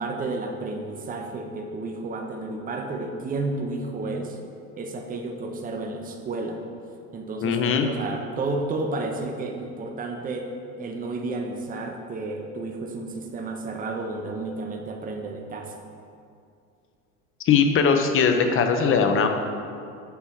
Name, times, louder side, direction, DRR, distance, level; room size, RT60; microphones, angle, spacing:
voice 1, 0.0-4.4 4.8-6.6 7.1-15.8, right 3 dB, 20° right, 3 dB, 0.7 m, -32 dB
voice 2, 7.4-7.9 17.4-19.3, left 6 dB, 30° left, 5 dB, 0.7 m, -20 dB
6.9 x 4.5 x 4.4 m, 2.4 s
hypercardioid pair, 75°, 44 cm